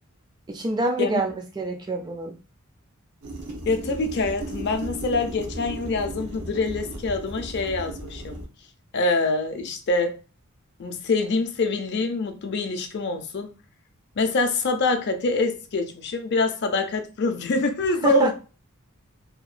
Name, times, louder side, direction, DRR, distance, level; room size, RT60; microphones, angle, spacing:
voice 1, 0.5-2.4 18.0-18.3, right 1 dB, 20° right, 0.4 m, -26 dB
sound 1, 3.2-8.5, right 1 dB, 85° right, 0.8 m, -36 dB
voice 2, 3.6-8.4 8.9-10.2 10.8-13.5 14.2-18.3, left 3 dB, 50° left, 0.4 m, -25 dB
2.8 x 2.1 x 2.4 m
head